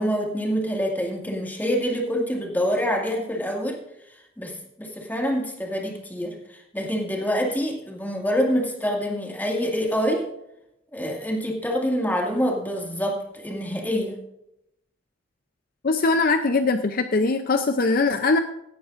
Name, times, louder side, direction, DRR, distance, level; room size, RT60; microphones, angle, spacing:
voice 1, 0.0-3.8 4.4-10.3 10.9-14.2, equal, 10° left, 0 dB, 2.0 m, -26 dB
voice 2, 15.8-18.4, left 3 dB, 45° left, 8 dB, 0.6 m, -21 dB
17.5 x 10.0 x 2.6 m, 0.82 s
head